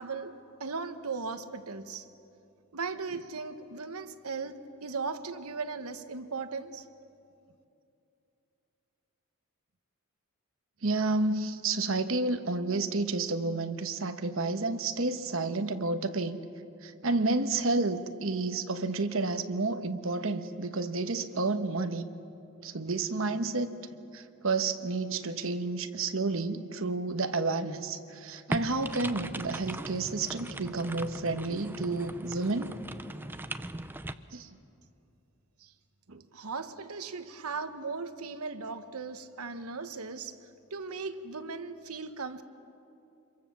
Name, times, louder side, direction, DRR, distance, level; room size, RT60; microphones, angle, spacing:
voice 1, 0.0-2.1 2.7-6.9 35.6-35.7 36.3-40.4 40.7-42.4, right 4 dB, 85° right, 10 dB, 1.2 m, -37 dB
voice 2, 10.8-16.4 16.8-22.1 22.6-23.7 24.1-32.7 34.3-34.5 36.1-36.2, right 3 dB, 65° right, 8 dB, 1.1 m, -30 dB
sound 1, 28.5-34.1, right 1 dB, 10° right, 0.5 m, -39 dB
26.0 x 23.0 x 7.2 m, 2.7 s
head